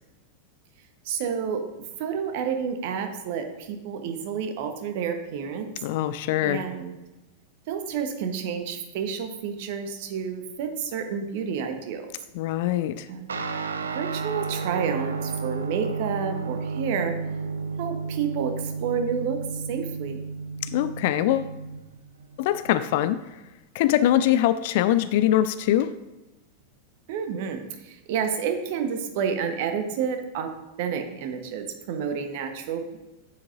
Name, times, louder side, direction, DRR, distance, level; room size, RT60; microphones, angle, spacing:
voice 1, 1.0-1.6 2.0-5.7 6.4-6.9 7.7-12.1 13.1-13.4 13.9-17.1 17.8-20.2 27.1-30.5 30.8-33.0, right 7 dB, 50° right, 6 dB, 1.1 m, -30 dB
voice 2, 5.8-6.6 12.3-13.1 20.6-21.5 22.4-23.2 23.7-25.9, left 12 dB, 50° left, 13 dB, 0.4 m, -23 dB
Guitar, 13.3-23.0, right 4 dB, 70° right, 0.5 m, -32 dB
9.8 x 7.5 x 2.6 m, 1.1 s
figure-of-eight pair, 90°, 0 cm